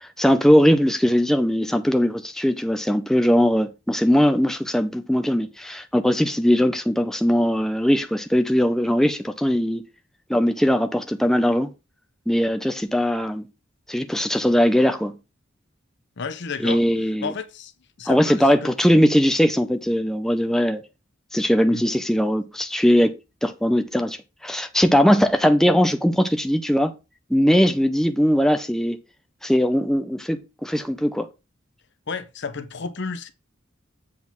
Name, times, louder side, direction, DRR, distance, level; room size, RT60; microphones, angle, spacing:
voice 1, 0.0-9.9 10.3-11.7 12.3-13.4 13.9-15.1 16.6-17.3 18.1-20.8 21.3-26.9 27.3-29.0 29.4-31.3, equal, ahead, 0.5 m, -20 dB
voice 2, 16.2-16.8 17.2-17.7 18.0-18.7 21.7-21.8 32.1-33.3, left 5 dB, 60° left, 0.8 m, -31 dB
7.5 x 3.8 x 6.0 m
head